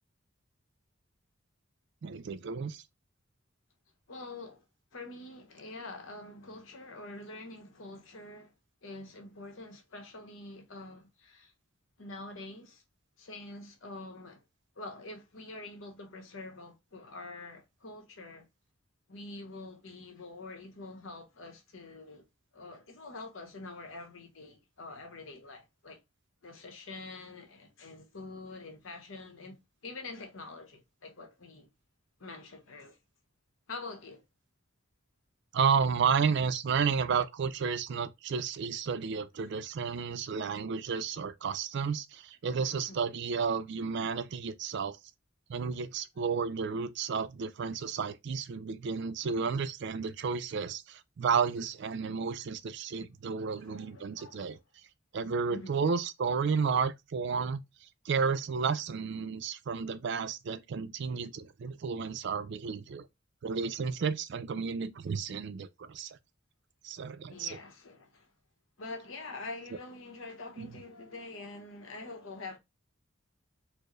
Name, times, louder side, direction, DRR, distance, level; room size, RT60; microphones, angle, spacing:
voice 1, 2.0-2.8 35.5-45.0 45.5-54.6 55.1-57.6 58.1-63.1 63.4-66.2 66.8-67.5 70.6-70.7, right 5 dB, 60° right, 0.4 m, -32 dB
voice 2, 4.1-4.6 4.9-8.5 8.8-11.5 12.0-12.8 13.2-14.4 14.8-18.5 19.1-22.2 22.5-26.0 26.4-29.6 29.8-31.7 32.2-33.0 33.7-34.2 42.9-43.1 53.6-54.6 55.5-55.8 67.3-68.3 68.8-72.6, left 2 dB, 75° left, 1.0 m, -45 dB
4.4 x 2.1 x 3.0 m
head